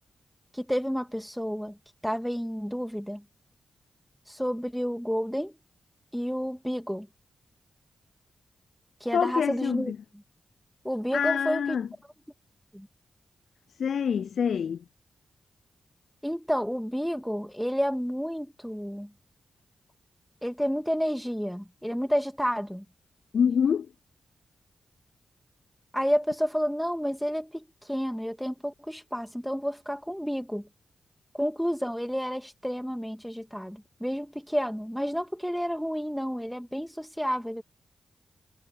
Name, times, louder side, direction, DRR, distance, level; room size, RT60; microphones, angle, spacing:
voice 1, 0.5-1.8 2.0-3.2 4.3-5.6 6.1-7.1 9.0-9.9 10.8-11.8 12.7-12.9 16.2-19.1 20.4-22.8 25.9-30.7 31.3-37.6, equal, ahead, 2.4 m, -30 dB
voice 2, 9.1-10.0 11.1-11.9 13.8-14.8 23.3-23.9, left 7 dB, 75° left, 0.3 m, -26 dB
supercardioid pair, 40°, 0 cm